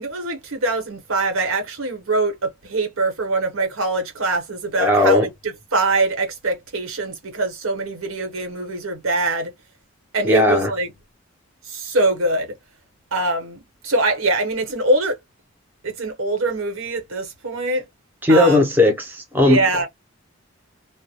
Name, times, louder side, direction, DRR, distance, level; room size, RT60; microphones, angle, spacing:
voice 1, 0.0-9.5 10.1-10.9 11.6-12.5 13.1-15.2 15.8-17.8 18.3-18.7 19.4-19.9, right 2 dB, 80° right, 1.0 m, -23 dB
voice 2, 4.8-5.3 10.2-10.7 18.2-19.6, left 2 dB, 10° right, 0.5 m, -16 dB
2.2 x 2.0 x 2.8 m
head